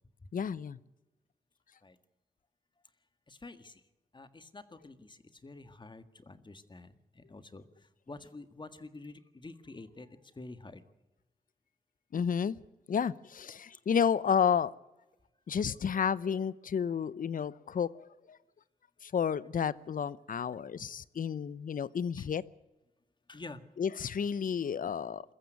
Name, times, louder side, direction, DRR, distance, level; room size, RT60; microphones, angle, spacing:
voice 1, 0.3-0.8 12.1-12.6 12.9-14.7 15.5-18.4 19.0-22.4 23.8-25.2, left 7 dB, 60° left, 0.8 m, -31 dB
voice 2, 3.3-3.8 4.1-7.6 8.1-10.1 10.3-10.8 22.2-22.3 23.3-23.6 24.8-24.9, left 3 dB, 30° left, 1.7 m, -48 dB
22.0 x 14.5 x 9.3 m
cardioid pair, 70°, 15 cm